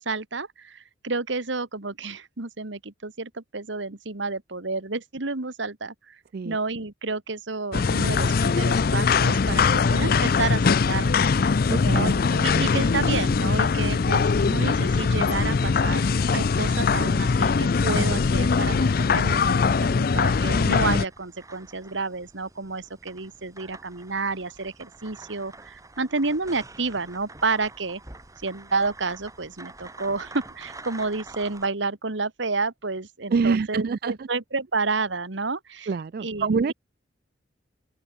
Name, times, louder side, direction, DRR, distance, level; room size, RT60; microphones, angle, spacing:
voice 1, 0.0-6.2 6.4-11.3 11.9-28.0 28.4-35.9 36.2-36.6, right 3 dB, 75° right, 1.7 m, -30 dB
sound 1, 7.7-21.1, left 5 dB, 50° left, 0.4 m, -21 dB
voice 2, 11.7-12.1 33.3-34.3 35.9-36.7, right 5 dB, 50° right, 0.4 m, -25 dB
sound 2, 21.1-31.7, right 2 dB, 15° right, 2.5 m, -46 dB
open air
head